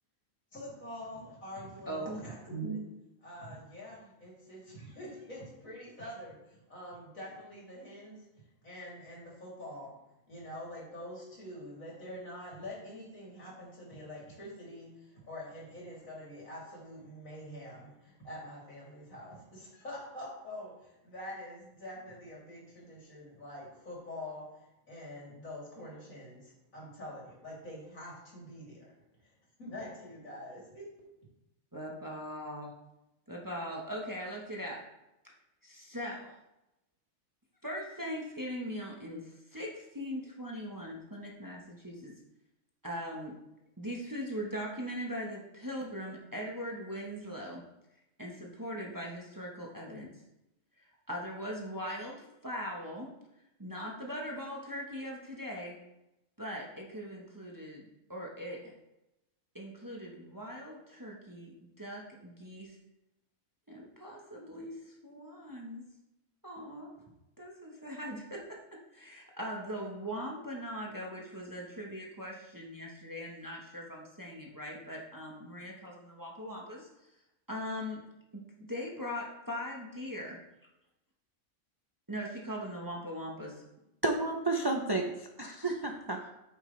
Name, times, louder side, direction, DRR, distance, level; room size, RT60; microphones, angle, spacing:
voice 1, 0.5-2.9 3.2-8.3 8.6-10.0 10.3-24.5 24.9-28.9 29.2-29.3 29.6-30.9, equal, 80° left, -6 dB, 3.6 m, -45 dB
voice 2, 1.9-2.2 31.7-32.7 33.3-34.9 35.6-36.3 37.6-42.1 42.8-43.4 43.8-47.6 48.2-50.2 50.8-53.1 53.6-55.8 56.4-58.7 59.5-62.8 63.7-65.9 66.4-66.9 67.4-76.9 77.5-78.0 78.3-80.4 82.1-83.6 85.6-85.8, equal, 15° right, -2 dB, 1.1 m, -40 dB
voice 3, 84.0-86.3, right 2 dB, 35° right, 3 dB, 0.4 m, -31 dB
9.1 x 7.0 x 3.3 m, 0.92 s
omnidirectional pair, 1.4 m